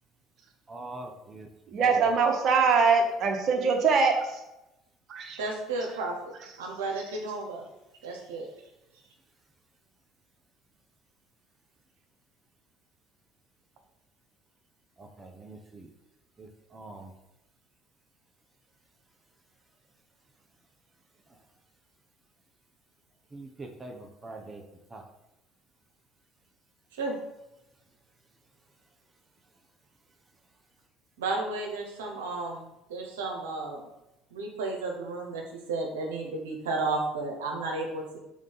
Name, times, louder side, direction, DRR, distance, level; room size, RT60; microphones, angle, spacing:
voice 1, 0.7-2.1 15.0-15.9 16.4-17.1 23.3-24.6 24.9-25.0, right 2 dB, 25° right, 2 dB, 1.1 m, -44 dB
voice 2, 1.7-4.4 5.1-5.4, right 5 dB, 55° right, 3 dB, 1.2 m, -23 dB
voice 3, 5.4-7.6 8.0-8.5 26.9-27.2 31.2-33.9 34.3-35.4 35.7-38.2, right 3 dB, 90° right, 1 dB, 1.0 m, -33 dB
5.1 x 3.8 x 5.6 m, 0.93 s
hypercardioid pair, 70°, 0 cm